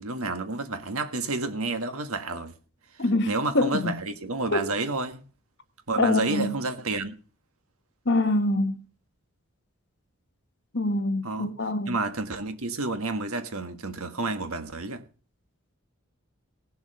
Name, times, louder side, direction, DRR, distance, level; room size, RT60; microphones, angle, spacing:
voice 1, 0.0-2.5 3.3-5.2 5.9-7.1 11.2-11.5 11.9-15.0, right 3 dB, 80° right, 1.6 m, -30 dB
voice 2, 3.0-4.0 4.5-4.7 6.0-6.6 8.0-8.8 10.7-12.0, left 2 dB, 50° left, 1.4 m, -25 dB
18.0 x 7.2 x 5.3 m
head